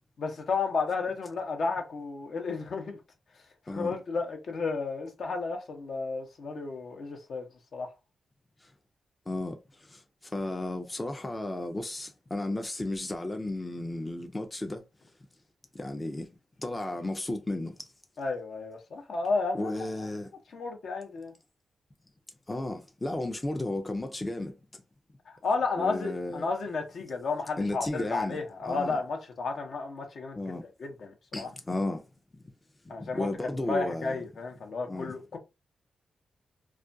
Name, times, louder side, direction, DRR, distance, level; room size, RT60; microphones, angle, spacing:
voice 1, 0.2-3.0 3.7-7.5 7.7-7.9 18.2-20.1 20.5-21.3 25.3-30.5 30.8-31.5 32.9-35.4, left 4 dB, 70° left, 0.7 m, -32 dB
voice 2, 9.3-14.8 15.7-16.3 16.6-17.9 19.5-20.3 22.5-24.8 25.8-26.5 27.6-28.4 28.6-29.0 30.4-30.7 31.3-32.1 32.3-32.5 32.8-34.2 34.9-35.1, left 2 dB, 20° left, 0.4 m, -34 dB
2.4 x 2.2 x 2.5 m
cardioid pair, 70°, 0 cm